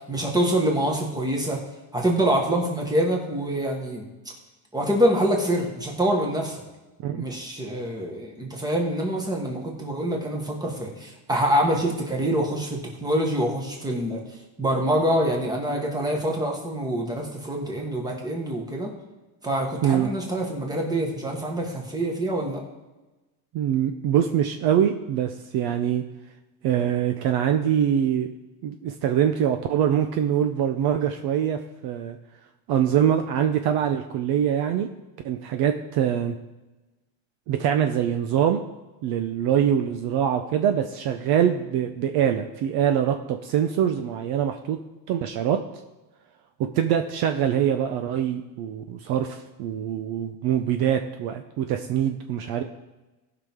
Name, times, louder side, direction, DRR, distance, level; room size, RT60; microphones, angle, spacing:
voice 1, 0.1-1.6 1.9-4.1 4.7-6.6 7.1-14.2 14.6-18.9 19.4-22.6, right 1 dB, 10° right, 0 dB, 1.5 m, -25 dB
voice 2, 23.5-26.0 26.6-28.3 28.6-32.2 32.7-34.9 35.2-36.3 37.5-38.6 39.0-44.8 45.1-45.6 46.6-52.6, right 9 dB, 55° right, 7 dB, 0.7 m, -24 dB
17.5 x 6.0 x 3.6 m, 1.1 s
cardioid pair, 170°, 46 cm